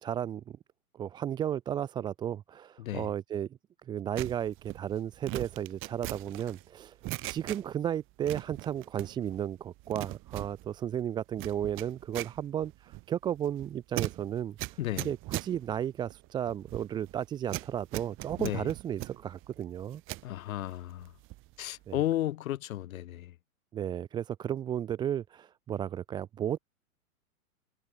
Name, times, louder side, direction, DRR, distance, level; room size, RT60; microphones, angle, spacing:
voice 1, 0.0-0.6 0.9-3.5 3.9-7.0 7.3-20.0 21.9-22.0 23.7-26.6, right 10 dB, 10° right, 0.5 m, -34 dB
voice 2, 2.8-3.1 14.8-15.1 18.4-18.7 20.2-21.1 21.6-23.3, left 13 dB, 75° left, 0.6 m, -33 dB
sound 1, 4.2-7.9 8.2-9.4 9.7-20.3 20.7-21.6 21.8-22.1, right 20 dB, 30° right, 1.2 m, -41 dB
hypercardioid pair, 120°, 42 cm